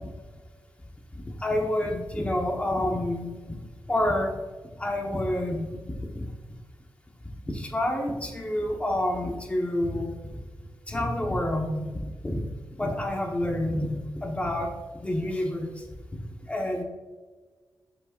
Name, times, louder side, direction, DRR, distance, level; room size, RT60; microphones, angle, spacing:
voice 1, 1.4-3.5 3.9-4.3 4.8-5.7 6.1-6.2 7.5-10.1 10.9-11.9 12.2-12.4 12.8-14.7 15.0-15.8 16.5-16.8, left 1 dB, 15° left, 1 dB, 1.1 m, -28 dB
8.0 x 7.4 x 2.5 m, 1.4 s
wide cardioid pair, 170°, 8 cm